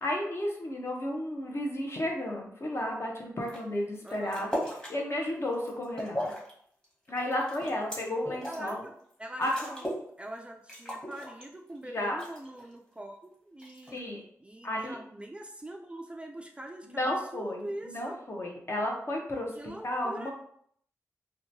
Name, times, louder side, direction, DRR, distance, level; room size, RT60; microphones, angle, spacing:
voice 1, 0.0-4.5 4.9-6.3 7.1-8.8 9.4-9.5 11.8-12.2 13.9-14.2 14.6-15.0 16.9-19.5 19.8-20.3, left 1 dB, 45° left, 0 dB, 0.7 m, -33 dB
sound 1, 3.4-3.6 4.0-4.9 5.4-6.5 6.8-8.7 9.1-9.2 9.4-10.1 10.4-10.5 10.7-11.8 12.2-12.7 13.6-14.1, equal, 15° left, 1.2 m, -37 dB
voice 2, 4.0-4.5 8.5-8.9 9.2-9.9 10.2-18.2 19.5-20.3, right 1 dB, 20° right, 2 dB, 0.3 m, -43 dB
2.8 x 2.2 x 2.7 m, 0.65 s
cardioid pair, 55°, 6 cm